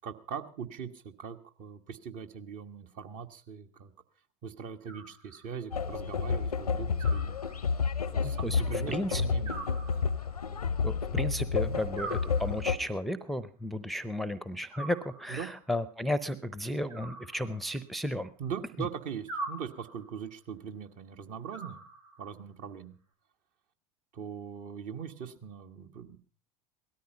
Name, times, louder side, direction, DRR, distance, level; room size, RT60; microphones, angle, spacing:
voice 1, 0.0-3.9 4.4-7.4 8.1-9.6 11.6-11.8 15.3-15.5 18.4-21.8 22.2-23.0 24.1-26.2, right 7 dB, 45° right, 7 dB, 1.5 m, -40 dB
Animal, 4.8-5.7 7.0-8.0 9.5-10.5 12.0-13.0 14.7-15.6 16.9-18.0 19.3-20.2 21.5-22.4, right 3 dB, 80° right, 4.0 m, -44 dB
sound 1, 5.7-12.8, left 5 dB, 85° left, 0.7 m, -30 dB
voice 2, 8.2-9.2 10.8-18.3 18.8-18.9, left 1 dB, ahead, 17 dB, 0.7 m, -34 dB
17.5 x 13.0 x 5.3 m, 0.39 s
figure-of-eight pair, 80°, 19 cm